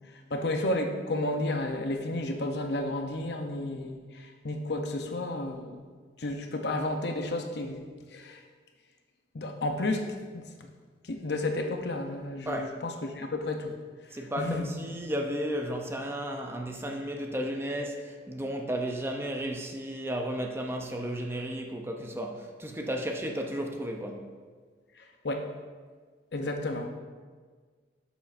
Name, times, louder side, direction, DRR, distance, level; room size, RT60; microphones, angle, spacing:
voice 1, 0.3-5.9 6.2-8.4 9.3-10.1 10.3-10.7 11.0-13.7 14.4-14.8 25.0-25.5 26.3-26.9, left 2 dB, 60° left, 4 dB, 0.7 m, -32 dB
voice 2, 12.4-12.8 14.1-24.3, equal, 15° right, 2 dB, 0.5 m, -33 dB
9.1 x 7.0 x 2.5 m, 1.6 s
head